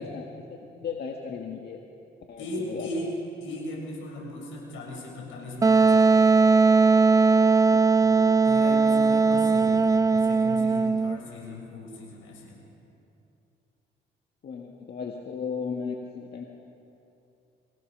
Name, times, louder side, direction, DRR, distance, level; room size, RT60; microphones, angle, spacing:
voice 1, 0.0-1.8 2.3-2.9 8.0-8.2 11.2-11.5 14.4-16.5, left 6 dB, 55° left, 1 dB, 1.8 m, -36 dB
voice 2, 2.4-6.4 8.0-12.6, left 1 dB, 85° left, -2 dB, 7.0 m, -37 dB
Wind instrument woodwind instrument, 5.6-11.2, right 4 dB, 15° right, 0.4 m, -19 dB
24.5 x 18.5 x 6.8 m, 2.8 s
cardioid pair, 90°, 20 cm